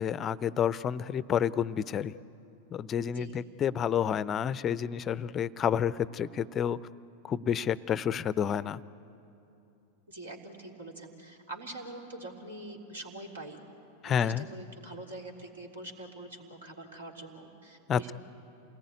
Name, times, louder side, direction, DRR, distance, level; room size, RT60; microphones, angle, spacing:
voice 1, 0.0-2.1 2.7-6.8 7.2-8.8 14.0-14.5 17.9-18.1, left 8 dB, 25° left, 18 dB, 0.6 m, -29 dB
voice 2, 3.1-3.4 10.1-13.6 14.0-18.1, right 2 dB, 70° right, 1 dB, 3.6 m, -44 dB
28.5 x 19.5 x 9.8 m, 2.9 s
figure-of-eight pair, 90°, 0 cm